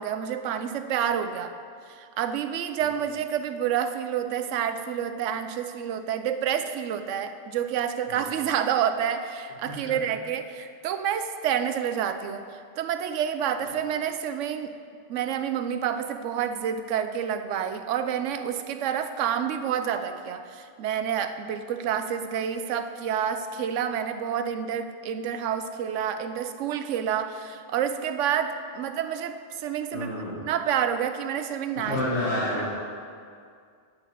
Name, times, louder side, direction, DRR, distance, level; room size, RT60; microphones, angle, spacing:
voice 1, 0.0-1.5 1.9-14.7 15.1-30.1 30.4-32.0 32.6-32.7, right 8 dB, 80° right, 9 dB, 0.9 m, -29 dB
voice 2, 9.7-10.1 29.9-30.4 31.8-32.7, left 1 dB, 70° left, -8 dB, 1.9 m, -30 dB
9.0 x 4.6 x 7.3 m, 2.2 s
omnidirectional pair, 1.3 m